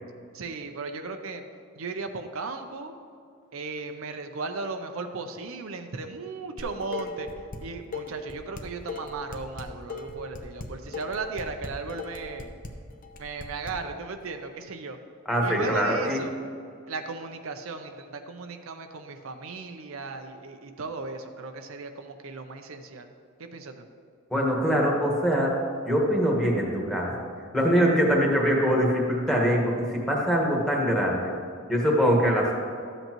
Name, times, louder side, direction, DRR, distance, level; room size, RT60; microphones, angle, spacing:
voice 1, 0.3-1.4 1.8-3.0 3.5-7.3 7.6-12.5 13.2-15.0 15.4-16.3 16.9-23.1 23.4-23.9, right 4 dB, 70° right, 6 dB, 0.6 m, -36 dB
Dishes pots and pans, 6.6-7.6 7.9-13.7, left 3 dB, 40° left, 0.7 m, -37 dB
voice 2, 15.2-16.2 24.3-25.6 25.8-27.1 27.5-31.3 31.7-32.5, equal, 5° left, -2 dB, 1.4 m, -23 dB
12.5 x 8.0 x 3.0 m, 2.3 s
head